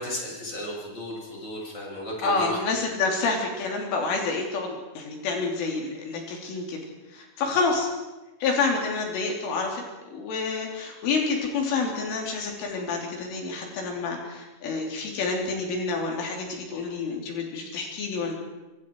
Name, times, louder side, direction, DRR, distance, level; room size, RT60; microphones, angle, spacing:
voice 1, 0.0-2.6, left 1 dB, 15° left, -2 dB, 7.3 m, -34 dB
voice 2, 2.2-6.8 7.1-7.9 8.4-9.8 10.1-18.3, left 4 dB, 80° left, 0 dB, 5.9 m, -28 dB
28.5 x 25.0 x 4.8 m, 1.1 s
omnidirectional pair, 5.6 m